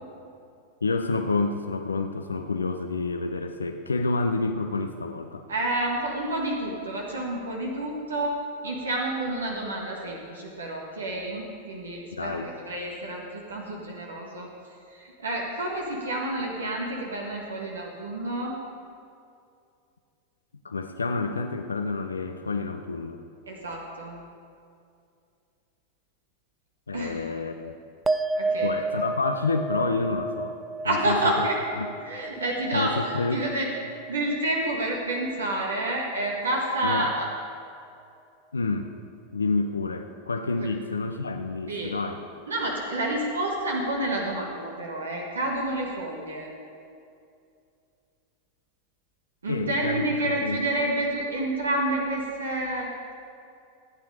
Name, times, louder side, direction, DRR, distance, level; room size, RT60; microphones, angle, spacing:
voice 1, 0.8-5.4 12.1-12.5 20.6-23.2 26.9-27.8 28.6-30.5 30.8-31.5 31.8-31.9 32.7-33.4 36.8-37.1 38.5-38.9 39.3-42.3 49.5-50.6, left 3 dB, 90° left, 6 dB, 0.5 m, -29 dB
voice 2, 5.5-12.4 12.6-14.5 14.9-18.6 23.5-24.2 26.9-27.3 28.4-29.0 30.8-31.6 32.0-33.7 34.1-37.3 40.6-40.7 41.7-41.9 42.5-46.5 49.4-52.9, right 1 dB, 85° right, -1 dB, 1.7 m, -29 dB
sound 1, 28.1-34.7 35.0-35.7, right 3 dB, 15° right, 0.4 m, -32 dB
15.0 x 8.9 x 4.9 m, 2.5 s
hypercardioid pair, 95°, 0 cm